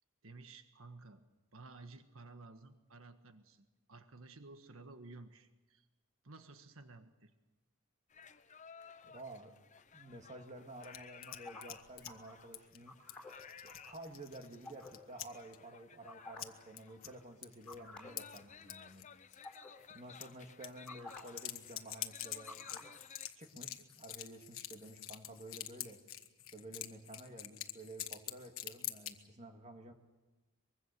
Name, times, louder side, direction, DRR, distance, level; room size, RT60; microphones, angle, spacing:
voice 1, 0.2-1.2 1.5-5.9 6.2-7.3, right 3 dB, 75° right, 8 dB, 1.5 m, -54 dB
sound 1, 8.1-23.3, left 6 dB, 35° left, 0.8 m, -57 dB
voice 2, 9.0-9.6 9.9-12.9 13.6-19.1 19.9-22.9 23.4-26.0 26.5-29.9, right 1 dB, 35° right, 4 dB, 2.2 m, -52 dB
sound 2, 10.8-12.1 12.5-12.8 13.1-15.3 15.5-15.6 16.4-16.5 16.8-17.1 17.4-17.8 18.2-19.1 19.3-19.6 20.2-20.3 20.6-29.1, left 13 dB, 75° left, 1.4 m, -46 dB
sound 3, 11.3-12.3 12.9-13.9 14.6-14.9 16.1-16.6 16.9-17.1 17.7-18.1 18.5-18.7 19.4-19.7 20.9-21.2 22.4-22.9, left 3 dB, 5° left, 4.0 m, -51 dB
24.0 x 22.5 x 6.8 m, 1.1 s
head